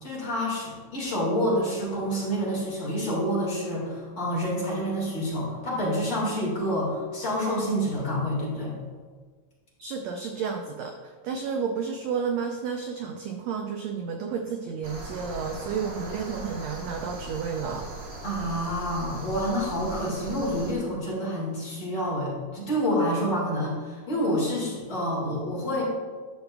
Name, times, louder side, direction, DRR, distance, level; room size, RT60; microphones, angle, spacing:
voice 1, 0.0-8.7 18.2-25.8, equal, 40° left, -5 dB, 2.2 m, -28 dB
voice 2, 9.8-17.9 20.3-20.4, right 6 dB, 85° right, 4 dB, 1.5 m, -31 dB
sound 1, 14.8-20.7, right 2 dB, 55° right, 1.4 m, -39 dB
11.5 x 7.2 x 2.3 m, 1.5 s
omnidirectional pair, 3.6 m